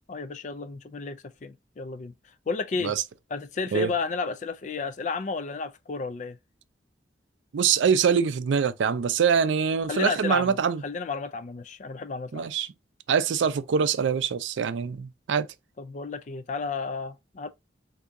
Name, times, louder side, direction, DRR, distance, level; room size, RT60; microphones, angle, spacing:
voice 1, 0.1-2.1 2.5-2.9 3.3-6.4 9.9-10.6 10.8-12.5 15.8-17.5, left 4 dB, 40° left, 0.3 m, -32 dB
voice 2, 7.5-10.8 12.3-12.7 13.1-15.5, right 6 dB, 80° right, 0.4 m, -24 dB
3.5 x 2.7 x 2.6 m
head